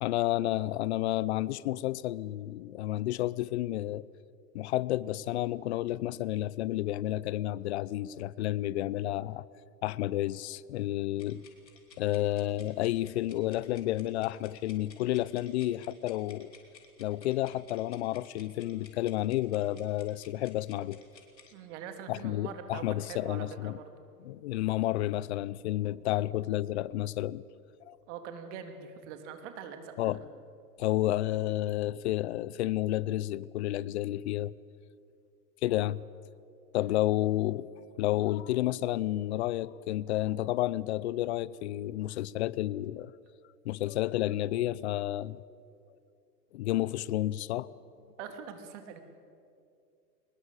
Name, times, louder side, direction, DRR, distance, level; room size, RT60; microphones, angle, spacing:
voice 1, 0.0-4.1 4.5-9.5 9.8-11.4 12.0-16.5 17.0-21.0 22.1-23.8 24.2-27.4 27.9-28.0 30.0-30.2 30.8-34.5 35.6-36.0 36.7-37.7 38.0-43.1 43.6-45.4 46.5-47.7, left 15 dB, 45° left, 0.6 m, -31 dB
sound 1, 11.2-21.5, left 6 dB, 90° left, 4.0 m, -57 dB
voice 2, 21.5-23.9 26.1-26.3 28.1-30.2 36.8-36.9 48.2-49.0, right 7 dB, 45° right, 2.9 m, -43 dB
23.0 x 20.5 x 8.4 m
hypercardioid pair, 130°, 49 cm